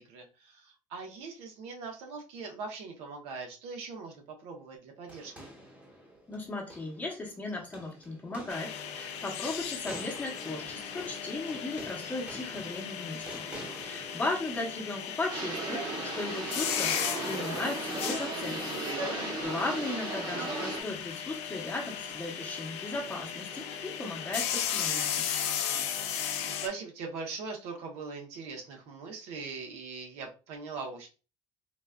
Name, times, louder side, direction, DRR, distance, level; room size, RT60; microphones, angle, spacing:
voice 1, 0.0-5.5 13.6-13.8 18.8-19.2 25.4-31.1, right 4 dB, 90° right, 2 dB, 0.9 m, -42 dB
sound 1, 5.1-15.4, right 1 dB, 15° right, 1.0 m, -49 dB
voice 2, 6.3-13.5 13.8-15.9 16.1-18.8 19.4-25.3, left 2 dB, 15° left, -1 dB, 0.8 m, -36 dB
sound 2, 8.5-26.7, left 8 dB, 85° left, 0.5 m, -36 dB
sound 3, 15.3-20.8, right 3 dB, 50° right, 0.9 m, -35 dB
3.9 x 2.4 x 2.2 m, 0.33 s
cardioid pair, 170°, 10 cm